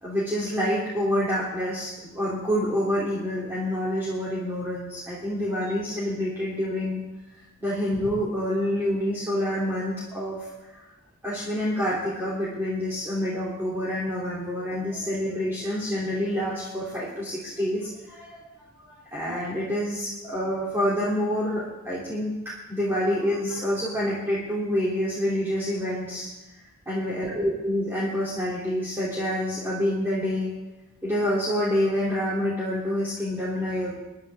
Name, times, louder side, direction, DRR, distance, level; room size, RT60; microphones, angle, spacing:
voice 1, 0.0-7.0 7.6-10.4 11.2-18.5 19.1-22.3 22.7-26.3 26.8-30.5 31.0-34.0, equal, 10° right, -9 dB, 3.3 m, -27 dB
24.0 x 11.0 x 3.7 m, 1.1 s
head